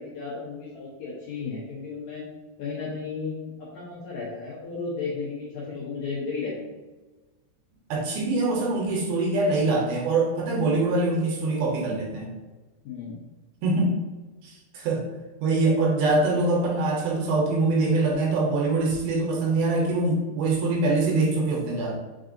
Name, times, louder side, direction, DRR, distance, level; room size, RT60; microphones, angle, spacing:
voice 1, 0.0-2.2 2.6-6.8 12.8-13.2, left 4 dB, 75° left, -6 dB, 1.7 m, -34 dB
voice 2, 7.9-12.3 13.6-14.0 14.4-15.1 15.4-22.0, right 2 dB, 80° right, -1 dB, 2.6 m, -24 dB
5.4 x 3.7 x 2.6 m, 1.2 s
omnidirectional pair, 4.4 m